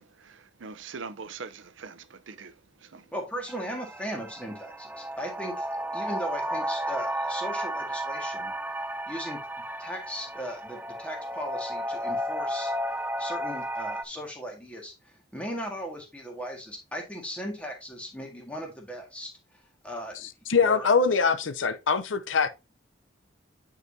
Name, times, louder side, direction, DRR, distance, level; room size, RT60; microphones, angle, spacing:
voice 1, 0.0-3.1, right 5 dB, 85° right, 0.6 m, -43 dB
voice 2, 3.1-5.7 5.9-8.5 9.1-9.4 9.8-12.7 13.2-19.3 19.8-20.2 20.5-20.9, equal, 5° left, 1.8 m, -37 dB
sound 1, 3.5-14.0, equal, 10° right, 0.3 m, -33 dB
voice 3, 20.5-22.5, left 5 dB, 90° left, 0.7 m, -23 dB
9.4 x 4.9 x 2.7 m
head